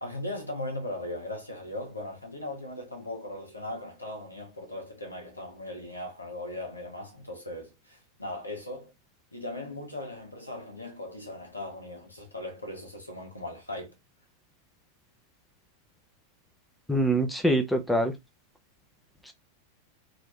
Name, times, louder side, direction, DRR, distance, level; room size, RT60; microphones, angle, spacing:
voice 1, 0.0-8.9 9.3-13.9, left 1 dB, 85° left, 1.3 m, -38 dB
voice 2, 16.9-18.1, right 1 dB, 5° left, 0.6 m, -24 dB
3.0 x 2.8 x 3.2 m
figure-of-eight pair, 90°, 0 cm